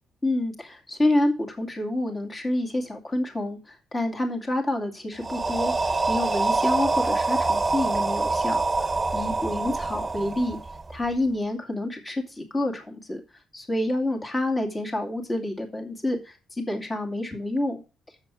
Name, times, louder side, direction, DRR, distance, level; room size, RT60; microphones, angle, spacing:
voice 1, 0.2-5.7 6.1-8.7 9.1-10.6 10.9-13.2 13.5-17.8, left 1 dB, 20° left, 2 dB, 2.4 m, -28 dB
Breathy ooohhh, 5.2-11.1, right 3 dB, 20° right, 1.1 m, -25 dB
7.4 x 7.3 x 6.3 m, 0.32 s
cardioid pair, 90°, 0 cm